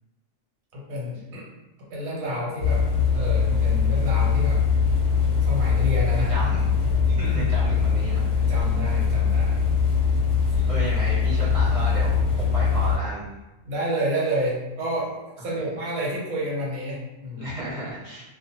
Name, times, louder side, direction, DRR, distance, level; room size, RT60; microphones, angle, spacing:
voice 1, 0.7-1.4 1.9-2.8 3.1-4.6 5.5-6.6 7.1-7.4 8.4-9.6 10.5-10.8 13.7-17.5, equal, 90° right, -5 dB, 1.3 m, -29 dB
sound 1, 2.6-13.0, left 6 dB, 60° left, 0.7 m, -22 dB
voice 2, 6.1-6.6 7.1-8.5 10.7-13.3 15.6-15.7 17.4-18.2, right 1 dB, 30° right, -9 dB, 0.9 m, -33 dB
2.4 x 2.2 x 2.8 m, 1.0 s
omnidirectional pair, 1.4 m